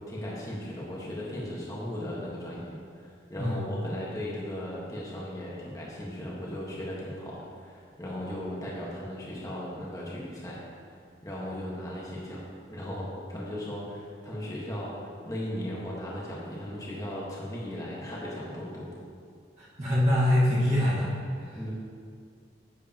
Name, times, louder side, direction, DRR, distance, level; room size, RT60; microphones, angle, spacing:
voice 1, 0.1-10.6 11.2-12.4 12.7-18.9 21.5-21.7, left 1 dB, 20° left, -5 dB, 1.4 m, -37 dB
voice 2, 19.6-21.1 21.4-21.6, left 1 dB, 35° right, -10 dB, 1.6 m, -24 dB
10.5 x 8.1 x 2.9 m, 2.3 s
head